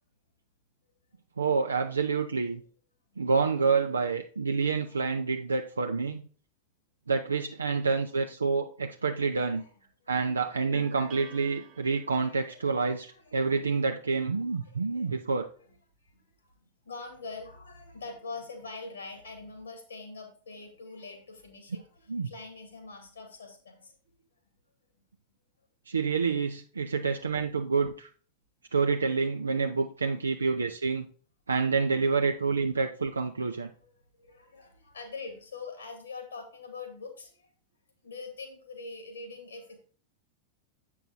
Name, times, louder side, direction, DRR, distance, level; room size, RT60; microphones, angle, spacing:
voice 1, 1.4-2.6 3.2-6.3 7.1-9.7 10.1-15.5 22.1-22.3 25.9-28.1 28.7-31.1 31.5-33.7, right 4 dB, 75° right, 4 dB, 0.5 m, -28 dB
voice 2, 9.3-10.1 12.2-13.6 14.5-15.1 15.6-24.1 24.4-24.5 32.3-32.4 33.6-37.5 38.0-39.8, left 4 dB, 75° left, 4 dB, 2.1 m, -45 dB
sound 1, 10.7-12.5, right 10 dB, 40° right, 0.8 m, -49 dB
7.8 x 5.5 x 3.9 m, 0.42 s
figure-of-eight pair, 90°, 0 cm